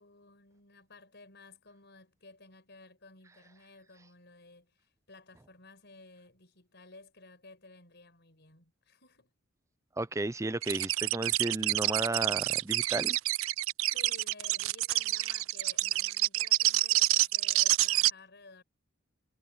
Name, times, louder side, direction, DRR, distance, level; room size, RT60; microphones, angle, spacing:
voice 1, 0.0-9.3 13.9-18.6, left 3 dB, 55° left, 5.4 m, -55 dB
voice 2, 10.0-13.2, right 2 dB, 15° right, 0.5 m, -33 dB
sound 1, 10.6-18.1, right 17 dB, 80° right, 0.4 m, -28 dB
head